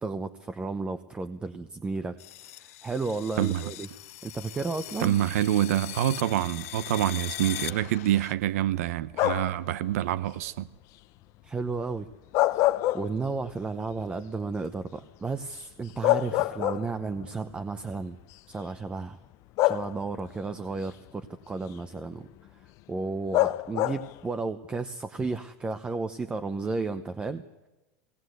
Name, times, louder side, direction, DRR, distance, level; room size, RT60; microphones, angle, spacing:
voice 1, 0.0-3.9 4.2-5.1 11.4-12.1 12.5-18.2 18.5-19.2 19.6-22.3 22.5-27.4, right 4 dB, 15° right, 0.8 m, -33 dB
sound 1, 2.2-8.3, left 16 dB, 75° left, 0.8 m, -40 dB
voice 2, 5.0-10.7, right 12 dB, 80° right, 0.8 m, -26 dB
sound 2, 9.1-9.7 12.1-13.5 13.9-14.0 15.6-15.7 16.0-17.2 18.2-18.3 19.6-20.3 23.3-24.2, left 17 dB, 45° left, 0.7 m, -26 dB
20.0 x 18.5 x 8.0 m
supercardioid pair, 150°, 8 cm